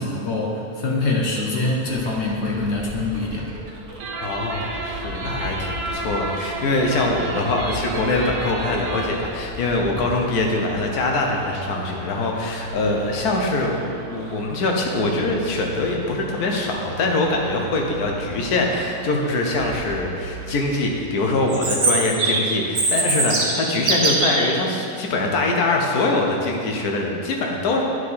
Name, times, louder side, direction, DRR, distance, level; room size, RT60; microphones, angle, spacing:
voice 1, 0.0-3.5, left 2 dB, 50° left, -2 dB, 1.1 m, -24 dB
sound 1, 1.4-21.0, right 1 dB, 40° right, 1.3 m, -37 dB
sound 2, 4.0-9.4, right 2 dB, 75° right, 1.2 m, -31 dB
voice 2, 4.2-27.8, left 2 dB, 75° left, 0 dB, 1.4 m, -23 dB
Chirp tweet, 21.5-24.5, right 3 dB, 60° right, 1.5 m, -21 dB
9.6 x 4.8 x 4.1 m, 2.5 s
omnidirectional pair, 1.7 m